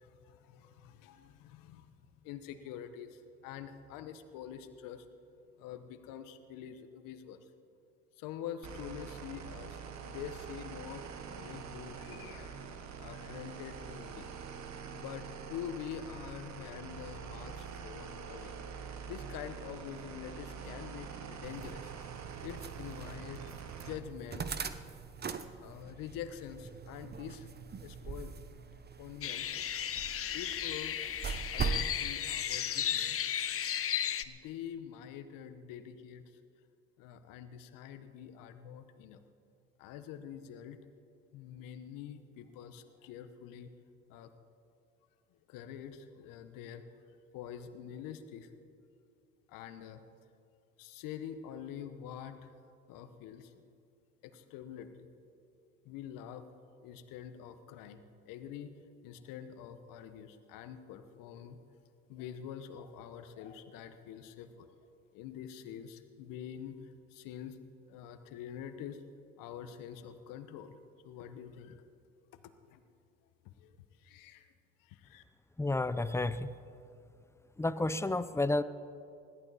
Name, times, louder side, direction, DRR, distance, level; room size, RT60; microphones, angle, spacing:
voice 1, 0.0-1.9 2.2-5.0 5.6-7.5 8.2-12.7 13.0-14.3 14.9-18.5 19.0-21.9 22.4-24.5 25.6-27.5 27.8-28.4 29.0-29.5 30.3-31.0 31.5-33.2 34.2-36.2 37.0-39.2 39.8-40.8 41.3-43.7 44.1-44.3 45.5-46.8 47.3-48.5 49.5-50.0 50.8-52.5 52.9-53.5 54.2-55.1 55.8-56.5 56.8-58.8 59.0-61.6 62.1-64.7 65.1-67.6 67.9-69.0 69.4-70.8 71.0-71.8 72.7-72.8 73.4-74.5 74.8-75.2, left 9 dB, 70° left, 10 dB, 1.2 m, -46 dB
sound 1, 8.6-24.0, right 6 dB, 55° right, 1.4 m, -45 dB
sound 2, 21.4-31.9, right 6 dB, 30° right, 0.9 m, -42 dB
sound 3, 29.2-34.2, left 9 dB, 40° left, 0.8 m, -34 dB
voice 2, 75.6-76.5 77.6-78.6, left 2 dB, 10° left, 14 dB, 0.6 m, -31 dB
20.5 x 14.5 x 4.2 m, 2.5 s
hypercardioid pair, 65°, 34 cm